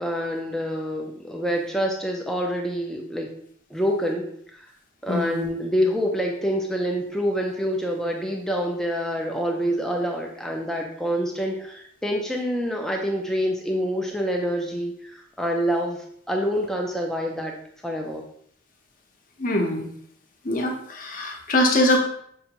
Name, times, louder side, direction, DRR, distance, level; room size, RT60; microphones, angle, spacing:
voice 1, 0.0-3.3 3.7-4.7 5.0-17.5 17.8-18.2, equal, 5° left, 0 dB, 0.4 m, -26 dB
voice 2, 5.1-5.5 19.4-19.9 20.4-22.0, left 1 dB, 45° left, 1 dB, 0.7 m, -23 dB
5.4 x 2.5 x 2.9 m, 0.65 s
head